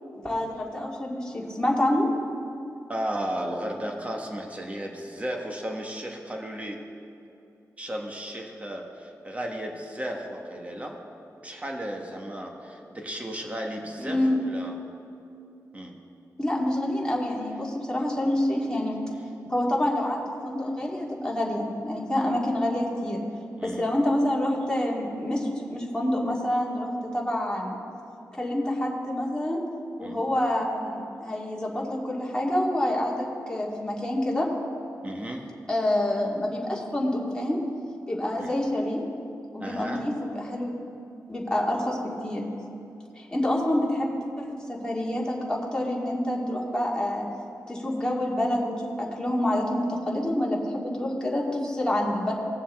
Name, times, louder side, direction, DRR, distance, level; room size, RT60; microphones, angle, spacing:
voice 1, 0.2-2.1 14.0-14.4 16.4-19.0 19.5-23.2 23.6-27.8 28.4-29.6 30.0-34.5 35.7-37.6 38.1-39.0 39.5-40.7 41.3-42.5 43.2-47.3 47.7-52.3, left 1 dB, 15° left, -3 dB, 2.1 m, -27 dB
voice 2, 2.9-6.8 7.8-11.0 11.4-14.8 15.7-16.0 23.6-23.9 30.0-30.2 35.0-35.5 38.4-38.5 39.6-40.1, right 1 dB, 20° right, 1 dB, 1.5 m, -34 dB
18.5 x 7.1 x 3.7 m, 2.7 s
wide cardioid pair, 90°, 6 cm